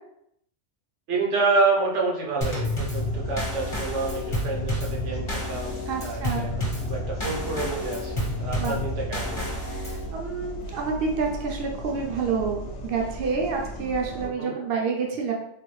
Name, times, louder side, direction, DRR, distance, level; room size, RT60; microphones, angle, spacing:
voice 1, 1.1-9.6 14.2-14.5, right 3 dB, 85° right, -2 dB, 1.1 m, -28 dB
Drum kit / Snare drum / Bass drum, 2.4-10.1, left 1 dB, 30° left, 1.0 m, -30 dB
sound 1, 2.9-14.3, right 1 dB, 65° left, 0.9 m, -37 dB
voice 2, 5.9-6.5 8.6-8.7 9.7-15.3, right 5 dB, 60° right, 0 dB, 0.8 m, -28 dB
3.6 x 2.1 x 3.1 m, 0.74 s
omnidirectional pair, 1.2 m